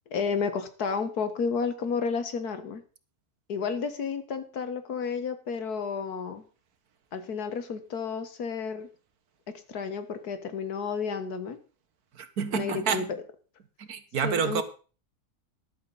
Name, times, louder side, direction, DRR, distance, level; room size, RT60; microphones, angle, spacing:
voice 1, 0.1-2.8 3.5-6.4 7.1-8.9 9.5-11.6 12.5-13.0 14.2-14.6, left 5 dB, 85° left, 10 dB, 1.9 m, -31 dB
voice 2, 12.1-13.2 13.8-14.6, right 6 dB, 80° right, 10 dB, 1.8 m, -29 dB
14.0 x 11.5 x 4.0 m, 0.36 s
omnidirectional pair, 1.6 m